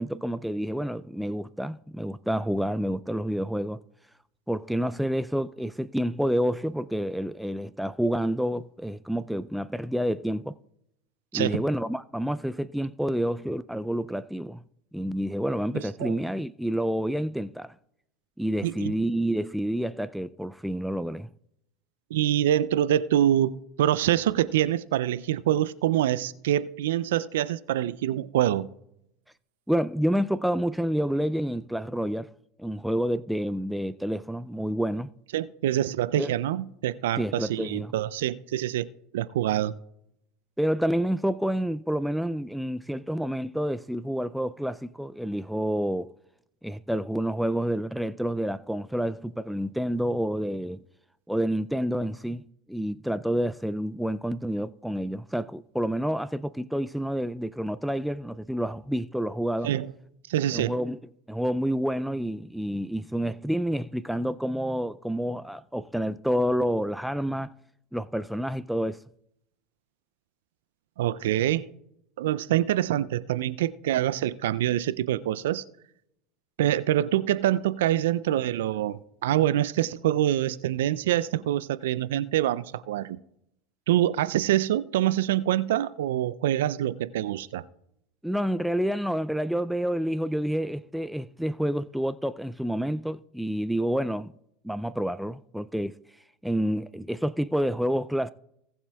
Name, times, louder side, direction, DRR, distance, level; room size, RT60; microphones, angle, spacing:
voice 1, 0.0-3.8 4.5-10.6 11.3-14.6 14.9-17.7 18.4-21.3 29.7-32.3 32.6-35.1 36.2-36.3 37.2-37.9 40.6-46.1 46.6-50.8 51.3-52.4 52.7-59.7 60.5-61.0 61.3-67.5 67.9-69.0 88.2-94.3 94.6-95.9 96.4-98.3, equal, ahead, 0.3 m, -28 dB
voice 2, 15.7-16.1 18.6-18.9 22.1-28.7 35.3-38.9 39.1-39.7 59.6-59.9 60.3-60.7 71.0-71.7 72.2-75.6 76.6-83.2 83.9-87.6, right 12 dB, 75° right, 0.4 m, -25 dB
19.0 x 7.2 x 2.3 m
hypercardioid pair, 80°, 0 cm